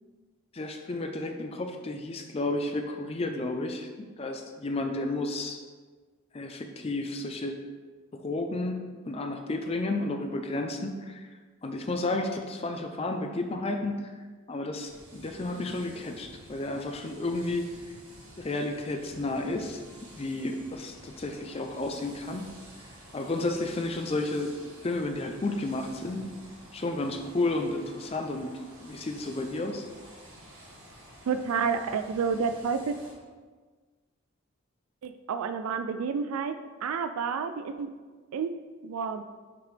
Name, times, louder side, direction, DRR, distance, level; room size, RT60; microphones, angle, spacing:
voice 1, 0.5-3.9 4.2-5.6 6.3-7.6 8.1-11.4 11.6-14.1 14.5-17.7 18.4-19.8 20.2-22.5 23.1-26.3 26.7-29.9, left 2 dB, 30° left, 4 dB, 0.4 m, -32 dB
sound 1, 14.8-33.1, right 1 dB, 70° right, 1.6 m, -51 dB
voice 2, 31.3-33.0 35.0-37.9 38.3-38.6 38.8-39.2, right 5 dB, 90° right, 9 dB, 0.4 m, -30 dB
5.9 x 5.8 x 3.3 m, 1.4 s
head